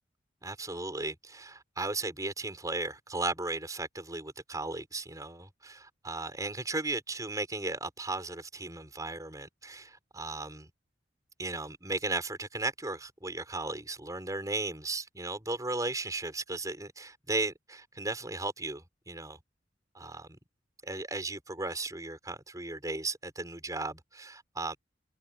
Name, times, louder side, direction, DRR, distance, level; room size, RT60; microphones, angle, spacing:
voice 1, 0.4-10.7 11.4-19.4 19.9-20.3 20.8-24.8, right 2 dB, 20° right, 4.6 m, -36 dB
head